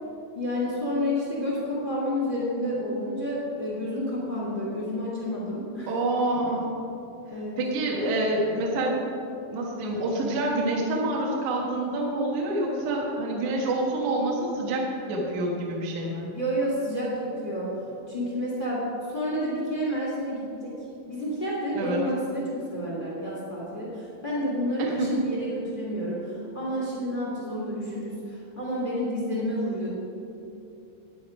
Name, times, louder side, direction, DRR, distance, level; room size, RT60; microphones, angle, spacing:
voice 1, 0.3-5.9 7.3-7.6 16.3-17.7 18.1-20.7 21.0-29.9, equal, 30° left, -6 dB, 0.8 m, -30 dB
voice 2, 5.9-6.7 7.6-9.0 9.5-16.3 21.7-22.0 24.8-25.1, right 2 dB, 70° right, -2 dB, 1.8 m, -27 dB
11.5 x 9.4 x 5.2 m, 2.8 s
omnidirectional pair, 5.4 m